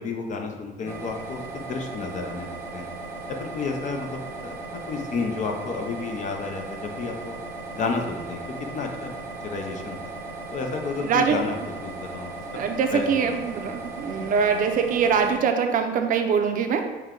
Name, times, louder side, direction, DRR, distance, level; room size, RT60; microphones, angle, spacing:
voice 1, 0.0-2.9 3.3-7.3 7.7-9.2 9.4-10.1 10.5-11.6 11.8-12.4 12.9-13.4 13.8-13.9 14.1-14.3, left 4 dB, 45° left, 3 dB, 0.7 m, -31 dB
sound 1, 0.8-15.4, right 3 dB, 15° right, 0.9 m, -37 dB
voice 2, 11.0-11.4 12.5-16.8, right 6 dB, 55° right, 5 dB, 0.5 m, -23 dB
6.3 x 2.2 x 3.7 m, 1.1 s
cardioid pair, 110°, 17 cm